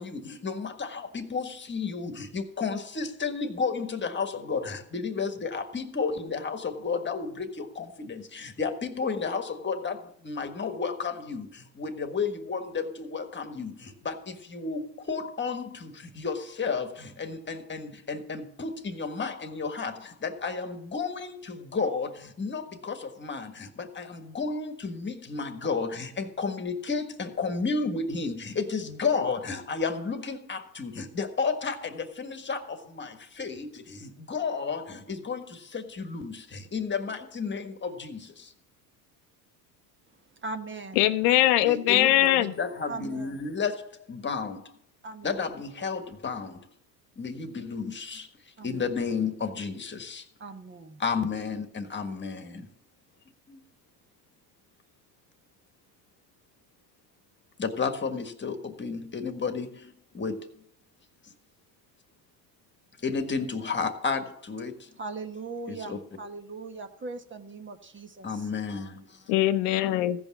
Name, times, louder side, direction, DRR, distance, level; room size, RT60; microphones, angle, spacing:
voice 1, 0.0-38.5 41.6-44.8 45.2-46.7 47.2-48.3 48.6-50.3 51.0-52.7 53.5-53.6 57.6-60.6 61.2-61.3 63.0-64.9 65.7-66.0 68.2-69.3, left 5 dB, 20° left, 1.6 m, -32 dB
voice 2, 40.3-41.0 42.9-43.4 45.0-45.4 48.6-48.9 50.4-51.0 65.0-68.5, right 3 dB, 25° right, 1.2 m, -39 dB
voice 3, 41.0-42.5 69.3-70.3, left 14 dB, 75° left, 0.8 m, -22 dB
15.5 x 5.4 x 7.2 m
supercardioid pair, 95°, 49 cm